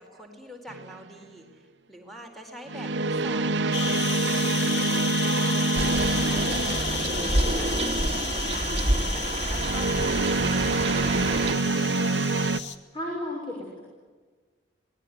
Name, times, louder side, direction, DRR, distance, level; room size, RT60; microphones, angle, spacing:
voice 1, 0.0-5.7 6.2-12.4, equal, ahead, 3 dB, 4.6 m, -46 dB
sound 1, 0.7-1.0 2.7-7.8 9.5-12.6, right 3 dB, 75° right, 0.9 m, -26 dB
sound 2, 3.7-12.8, left 6 dB, 70° left, 1.9 m, -33 dB
sound 3, 5.7-11.5, right 2 dB, 35° right, 1.9 m, -28 dB
voice 2, 12.9-13.8, left 1 dB, 30° left, -2 dB, 6.6 m, -34 dB
27.0 x 20.5 x 9.6 m, 1.4 s
head